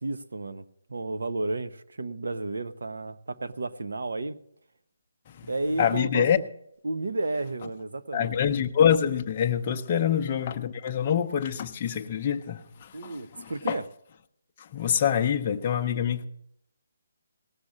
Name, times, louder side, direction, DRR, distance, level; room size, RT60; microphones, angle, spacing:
voice 1, 0.0-0.6 0.9-4.4 5.5-6.3 6.8-8.4 9.9-10.0 12.9-13.8, right 2 dB, 85° right, 0.9 m, -32 dB
voice 2, 5.8-6.4 8.1-13.8 14.6-16.3, left 8 dB, 20° left, 0.6 m, -26 dB
18.0 x 6.6 x 7.3 m
hypercardioid pair, 180°, 0 cm